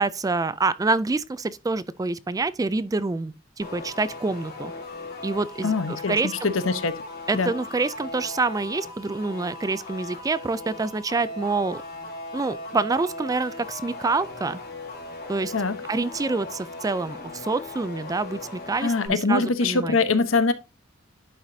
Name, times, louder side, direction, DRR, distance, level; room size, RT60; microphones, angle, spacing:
voice 1, 0.0-4.7 5.2-6.5 7.3-11.8 12.3-14.6 15.3-15.5 15.9-20.0, right 3 dB, 15° right, 0.3 m, -27 dB
sound 1, 3.6-19.1, left 2 dB, 50° left, 3.0 m, -38 dB
voice 2, 5.6-7.0 7.3-7.5 15.5-15.8 18.8-20.5, left 4 dB, 75° left, 0.9 m, -23 dB
11.0 x 4.9 x 2.7 m
head